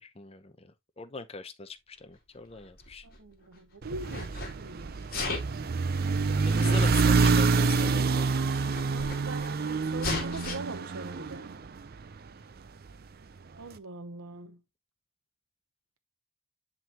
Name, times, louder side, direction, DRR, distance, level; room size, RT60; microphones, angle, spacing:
voice 1, 0.0-3.1 6.4-8.3, left 4 dB, 25° left, 0.7 m, -42 dB
Sneeze, 2.5-3.6 4.0-4.5 5.0-5.6 6.6-6.7 7.6-7.7 7.8-8.0 8.3-9.5 10.0-10.6, left 3 dB, 40° left, 2.5 m, -35 dB
voice 2, 3.0-5.6 6.6-7.0 8.9-11.6 13.6-14.6, right 3 dB, 70° right, 0.9 m, -43 dB
sound 1, 3.8-12.2, right 4 dB, 45° right, 0.5 m, -27 dB
10.0 x 3.9 x 2.8 m
head